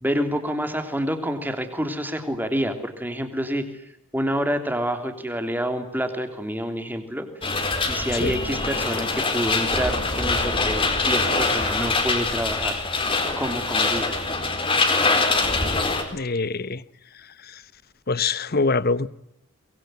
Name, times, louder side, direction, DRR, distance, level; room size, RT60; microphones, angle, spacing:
voice 1, 0.0-3.8 4.1-7.3 7.9-12.8 13.4-14.2, equal, 10° right, 3.3 m, -28 dB
sound 1, 7.4-16.0, left 3 dB, 25° left, 4.2 m, -23 dB
voice 2, 16.1-16.8 18.1-19.1, left 3 dB, 45° left, 1.0 m, -23 dB
24.0 x 22.5 x 9.4 m
head